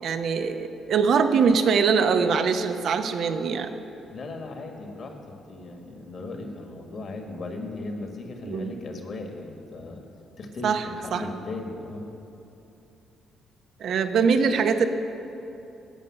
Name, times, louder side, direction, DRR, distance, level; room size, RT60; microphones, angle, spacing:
voice 1, 0.0-3.7 8.4-8.8 10.6-10.8 11.1-11.2 13.8-14.9, right 5 dB, 65° right, 8 dB, 0.7 m, -22 dB
voice 2, 4.1-10.0 10.4-12.1, left 2 dB, 50° left, 3 dB, 1.5 m, -37 dB
12.5 x 5.4 x 8.5 m, 3.0 s
cardioid pair, 90°, 0 cm